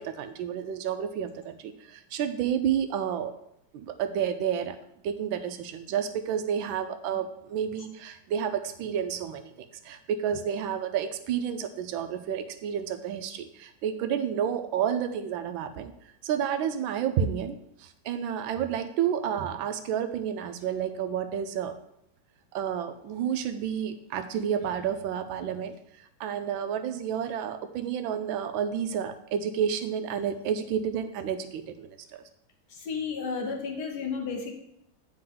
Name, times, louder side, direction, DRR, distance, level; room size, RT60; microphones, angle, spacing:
voice 1, 0.0-3.3 3.7-4.8 5.0-15.9 16.2-21.7 22.5-25.8 26.2-32.2, right 8 dB, 85° right, 9 dB, 1.4 m, -30 dB
voice 2, 32.7-34.5, left 5 dB, 60° left, 2 dB, 1.5 m, -32 dB
9.1 x 4.3 x 3.8 m, 0.77 s
omnidirectional pair, 2.1 m